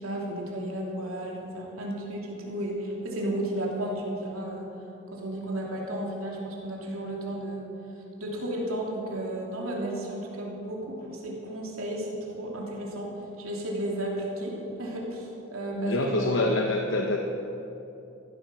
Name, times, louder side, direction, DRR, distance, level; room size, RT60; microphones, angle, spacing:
voice 1, 0.0-4.7 5.1-7.6 8.2-16.4, right 1 dB, 90° right, -2 dB, 3.2 m, -33 dB
voice 2, 15.8-17.2, left 2 dB, 65° left, 2 dB, 1.0 m, -25 dB
15.0 x 12.5 x 6.3 m, 3.0 s
head